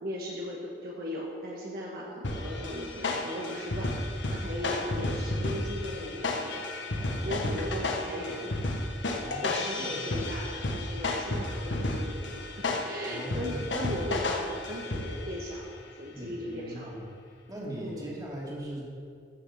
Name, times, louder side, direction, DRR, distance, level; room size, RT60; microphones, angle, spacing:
voice 1, 0.0-6.6 7.2-8.5 9.4-12.5 12.7-16.9 17.8-18.1, equal, 55° right, -3 dB, 1.7 m, -37 dB
sound 1, 2.2-15.4, left 2 dB, 80° left, 1.4 m, -32 dB
voice 2, 7.0-7.5 9.2-10.1 13.0-13.7 16.1-17.1 17.5-18.8, right 1 dB, 20° right, -4 dB, 2.9 m, -40 dB
14.0 x 7.1 x 7.3 m, 2.3 s
head